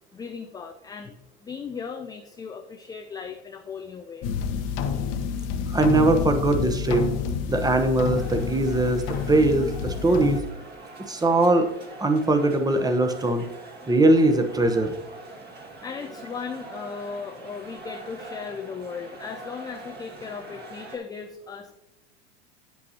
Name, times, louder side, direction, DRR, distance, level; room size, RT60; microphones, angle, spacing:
voice 1, 0.1-4.3 9.9-10.0 15.8-21.7, left 6 dB, 10° left, 5 dB, 0.3 m, -37 dB
sound 1, 4.2-10.4, left 6 dB, 45° left, 0.9 m, -29 dB
voice 2, 5.7-7.0 7.5-9.0 9.3-10.4 11.1-11.7 12.0-13.4 13.9-14.9, right 2 dB, 10° right, 7 dB, 0.9 m, -21 dB
sound 2, 8.1-21.0, right 2 dB, 30° right, 1.5 m, -43 dB
8.5 x 7.7 x 2.8 m, 0.91 s
hypercardioid pair, 100°, 35 cm